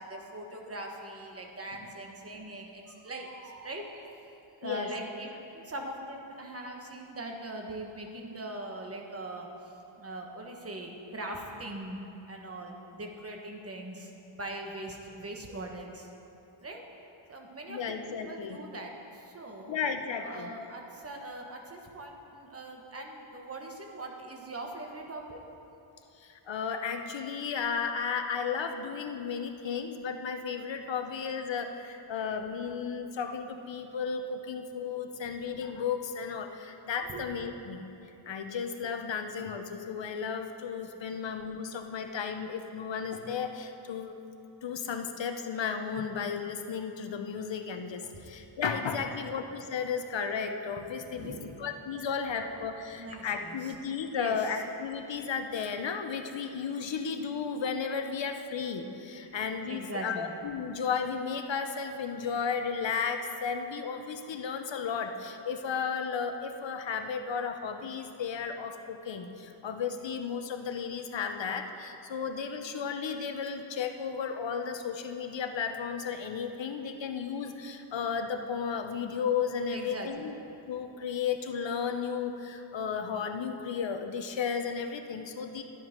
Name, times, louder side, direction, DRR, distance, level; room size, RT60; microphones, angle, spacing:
voice 1, 0.0-4.1 4.6-12.0 12.3-16.1 16.6-16.8 17.3-18.0 18.3-19.8 20.2-25.4 35.2-35.3 37.0-37.3 50.8-50.9 51.1-51.6 53.0-53.7 54.1-54.4 59.6-60.3 79.7-80.3, right 1 dB, 30° right, 1 dB, 1.2 m, -41 dB
voice 2, 17.7-18.6 19.7-20.5 26.2-37.8 38.3-44.2 44.6-80.3 80.7-85.6, left 6 dB, 60° left, 6 dB, 0.8 m, -34 dB
12.5 x 9.2 x 5.1 m, 2.9 s
wide cardioid pair, 165°, 50 cm